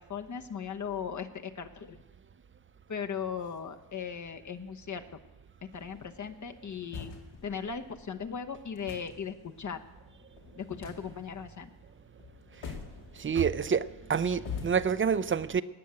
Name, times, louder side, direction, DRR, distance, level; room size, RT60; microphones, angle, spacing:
voice 1, 0.0-2.0 2.9-5.0 5.6-7.1 7.4-9.8 10.5-11.7, left 6 dB, 40° left, 6 dB, 1.1 m, -38 dB
sound 1, 5.7-14.9, left 5 dB, 80° left, 2.6 m, -46 dB
voice 2, 13.2-13.8 14.1-15.6, right 6 dB, 25° right, 15 dB, 0.6 m, -27 dB
18.5 x 6.4 x 8.4 m, 1.1 s
cardioid pair, 70°, 46 cm